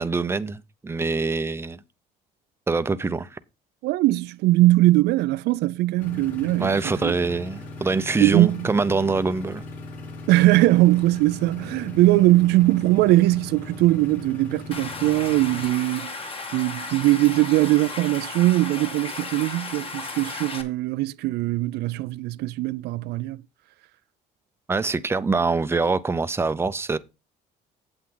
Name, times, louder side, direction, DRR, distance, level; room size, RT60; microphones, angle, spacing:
voice 1, 0.0-1.8 2.7-3.4 6.6-9.6 24.7-27.0, right 4 dB, 15° right, 0.6 m, -24 dB
voice 2, 3.8-7.1 8.2-8.7 10.3-16.2 16.5-23.4, right 18 dB, 80° right, 0.4 m, -20 dB
sound 1, 6.0-15.6, left 3 dB, 55° left, 5.0 m, -39 dB
Stream, 14.7-20.6, left 3 dB, 35° left, 1.8 m, -35 dB
8.4 x 7.8 x 3.8 m
cardioid pair, 110°, 17 cm